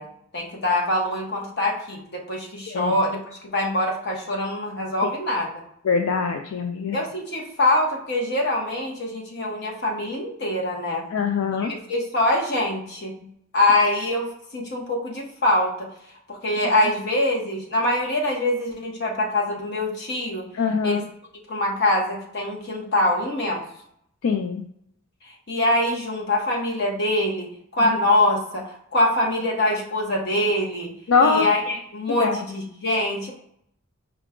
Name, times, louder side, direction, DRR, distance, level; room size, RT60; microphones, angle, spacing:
voice 1, 0.0-5.5 6.9-11.1 11.6-13.3 13.5-15.9 16.3-20.5 20.8-21.0 21.5-23.6 25.5-30.9 31.2-33.3, left 1 dB, 55° left, -1 dB, 1.1 m, -24 dB
voice 2, 5.8-7.0 11.1-11.7 20.5-21.0 24.2-24.6 27.8-27.9 31.1-31.5 32.1-32.4, left 5 dB, 80° left, 5 dB, 0.4 m, -22 dB
4.8 x 2.2 x 3.6 m, 0.72 s
head